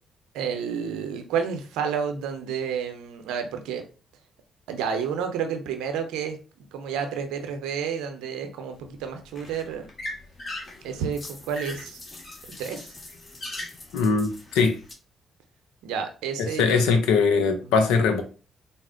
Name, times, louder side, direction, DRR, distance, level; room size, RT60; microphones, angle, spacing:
voice 1, 0.3-3.8 4.7-6.4 6.7-9.9 10.8-12.0 12.6-12.9 15.8-17.0 17.7-17.8, right 7 dB, 80° right, 0.6 m, -30 dB
sound 1, 8.7-14.9, left 1 dB, 40° left, 1.6 m, -40 dB
voice 2, 13.9-14.8 16.6-18.2, left 5 dB, 85° left, 0.6 m, -21 dB
4.0 x 2.1 x 3.7 m
hypercardioid pair, 50°, 0 cm